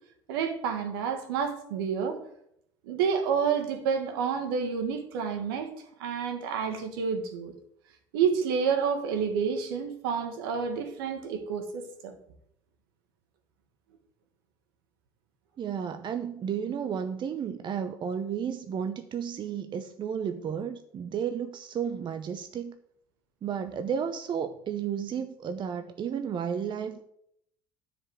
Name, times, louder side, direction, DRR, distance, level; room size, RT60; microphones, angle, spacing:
voice 1, 0.3-2.2 2.8-5.7 6.0-7.5 8.1-12.2, right 6 dB, 75° right, 7 dB, 1.6 m, -29 dB
voice 2, 15.6-22.8 23.4-27.0, right 7 dB, 40° right, 9 dB, 0.8 m, -32 dB
10.0 x 5.2 x 7.8 m, 0.73 s
hypercardioid pair, 65°, 12 cm